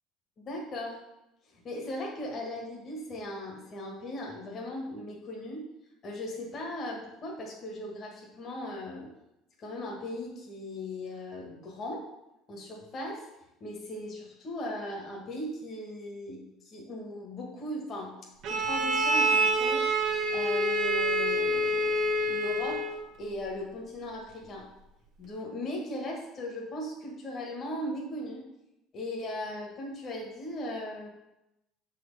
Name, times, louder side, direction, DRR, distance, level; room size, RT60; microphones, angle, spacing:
voice 1, 0.4-1.0 1.4-5.6 6.0-9.1 9.6-12.1 12.5-13.3 13.6-18.1 18.5-19.9 20.3-22.8 23.2-24.6 25.2-28.5 28.9-31.1, left 1 dB, 40° left, -1 dB, 1.7 m, -38 dB
Bowed string instrument, 18.4-23.0, right 1 dB, 65° right, 1.0 m, -26 dB
6.5 x 4.4 x 5.4 m, 0.91 s
supercardioid pair, 95°, 0 cm